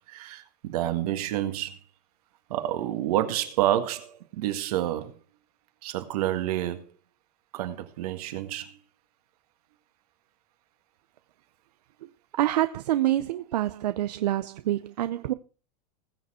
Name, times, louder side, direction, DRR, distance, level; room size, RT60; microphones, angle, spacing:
voice 1, 0.1-1.8 2.5-5.1 5.8-6.9 7.5-8.7, right 13 dB, 70° right, 1.9 m, -29 dB
voice 2, 12.0-15.3, right 13 dB, 85° right, 0.7 m, -27 dB
20.5 x 6.8 x 4.3 m
supercardioid pair, 140°, 20 cm